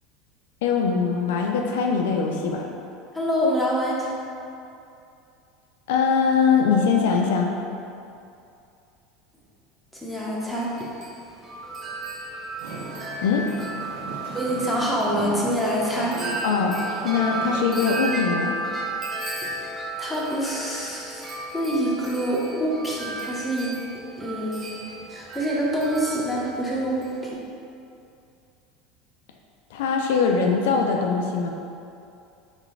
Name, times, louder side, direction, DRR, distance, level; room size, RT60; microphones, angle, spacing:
voice 1, 0.6-2.7 5.9-7.6 13.2-13.5 16.4-16.7 17.0-18.6 29.7-31.5, left 5 dB, 75° left, 1 dB, 0.3 m, -22 dB
voice 2, 3.1-4.1 9.9-10.7 14.3-16.2 19.4-19.6 20.0-23.8 24.2-24.7 25.1-27.4, equal, ahead, -6 dB, 1.0 m, -26 dB
Wind chime, 10.5-27.3, right 2 dB, 30° right, 0.5 m, -34 dB
sound 1, 12.6-17.6, right 3 dB, 75° right, 0.7 m, -37 dB
3.9 x 3.2 x 3.2 m, 2.6 s
hypercardioid pair, 80°, 0 cm